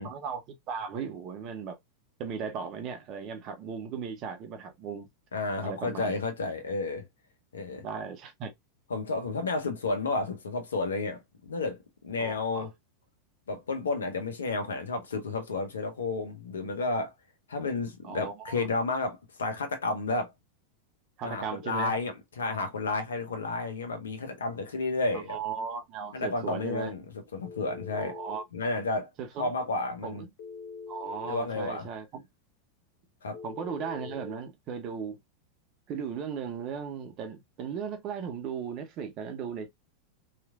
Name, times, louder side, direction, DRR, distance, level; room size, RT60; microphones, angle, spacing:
voice 1, 0.0-1.8 2.2-5.1 5.6-6.1 7.8-8.5 12.2-12.7 18.0-18.7 21.2-21.9 25.1-26.9 28.0-28.4 29.2-29.5 30.0-30.3 30.9-32.3 33.4-35.2 35.9-39.7, right 6 dB, 40° right, 0.7 m, -37 dB
voice 2, 5.3-7.0 7.5-7.8 8.9-11.8 12.0-12.7 13.5-17.1 17.5-20.3 21.2-25.4 26.1-28.2 28.5-29.1 29.4-30.3 31.2-31.9 33.2-33.4, left 3 dB, 75° left, 0.7 m, -31 dB
Telephone, 27.4-28.5 30.4-31.4 33.3-34.4, left 5 dB, 55° left, 0.4 m, -43 dB
3.0 x 2.4 x 2.3 m
figure-of-eight pair, 90°, 0 cm